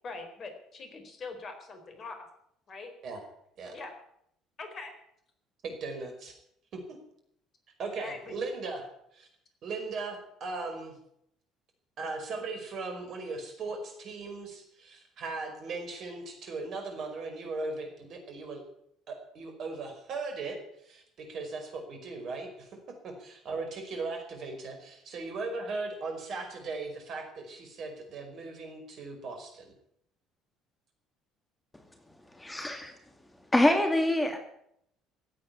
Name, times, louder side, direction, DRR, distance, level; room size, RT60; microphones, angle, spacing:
voice 1, 0.0-2.2 2.7-2.9 3.7-3.9 4.6-4.9 8.0-8.4, left 3 dB, 45° left, 6 dB, 4.2 m, -42 dB
voice 2, 5.6-6.3 6.7-6.8 7.8-9.3 9.6-10.9 12.0-18.6 19.1-29.7, right 3 dB, 55° right, 4 dB, 5.2 m, -38 dB
voice 3, 32.4-32.9 33.5-34.4, left 1 dB, 15° left, 5 dB, 2.5 m, -25 dB
16.0 x 9.2 x 9.7 m, 0.72 s
hypercardioid pair, 60°, 0 cm